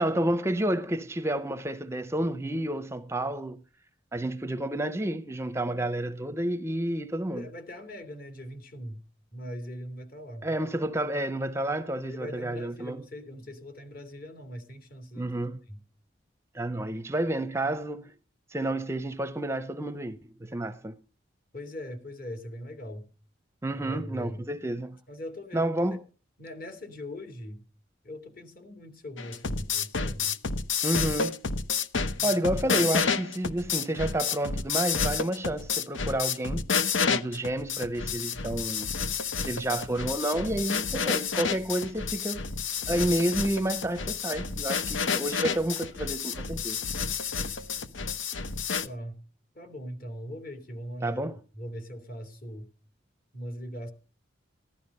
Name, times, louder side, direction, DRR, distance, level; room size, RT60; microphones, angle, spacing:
voice 1, 0.0-3.6 4.1-7.5 10.4-13.0 15.1-15.6 16.5-18.1 18.5-21.0 23.6-25.0 25.5-26.0 30.8-31.4 32.2-36.7 37.1-38.9 39.4-42.4 42.9-46.8 51.0-51.4, right 1 dB, 15° right, 0.6 m, -30 dB
voice 2, 7.3-9.0 9.3-10.5 12.1-15.3 15.7-15.8 21.5-23.1 23.7-24.5 25.1-25.7 26.4-27.6 28.0-30.4 32.2-32.3 48.8-49.2 49.5-51.2 51.5-52.7 53.3-53.9, equal, 50° left, 2.7 m, -40 dB
sound 1, 29.2-48.9, left 5 dB, 85° left, 0.9 m, -30 dB
15.5 x 11.5 x 5.3 m
head